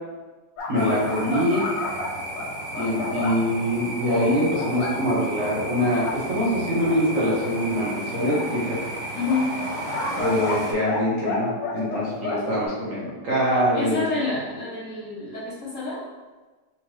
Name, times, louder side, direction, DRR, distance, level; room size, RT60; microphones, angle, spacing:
sound 1, 0.6-3.4 4.1-4.9 5.4-5.5 5.9-6.2 6.8-6.9 8.3-8.4 9.3-11.0 11.3-12.7, left 3 dB, 85° left, 1.4 m, -30 dB
voice 1, 0.7-1.7 2.7-8.8 10.1-14.0, equal, 50° right, -7 dB, 1.4 m, -24 dB
sound 2, 0.8-10.7, right 1 dB, 80° right, 1.5 m, -34 dB
voice 2, 9.1-9.5 13.7-16.0, left 3 dB, 50° left, -7 dB, 1.3 m, -28 dB
4.2 x 3.5 x 3.1 m, 1.2 s
omnidirectional pair, 1.9 m